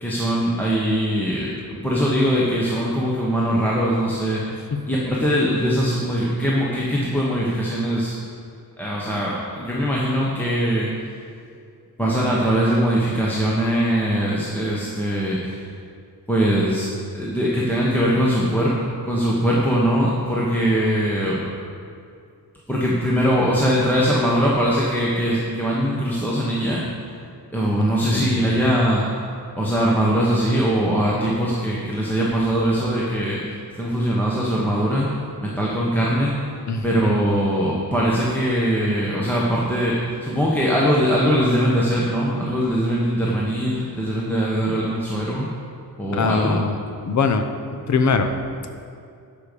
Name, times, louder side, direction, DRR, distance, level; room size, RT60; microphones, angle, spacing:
voice 1, 0.0-4.4 4.9-8.2 8.8-10.9 12.0-15.6 16.3-18.8 19.1-21.4 22.7-26.8 27.5-29.0 29.6-35.1 35.4-36.4 36.8-45.5 46.0-46.6, equal, 5° left, -6 dB, 1.2 m, -21 dB
voice 2, 28.0-28.6 36.7-36.8 46.1-46.8 47.1-47.5 47.9-48.3, left 4 dB, 45° left, 7 dB, 0.8 m, -21 dB
11.0 x 5.3 x 6.8 m, 2.4 s
wide cardioid pair, 135°, 38 cm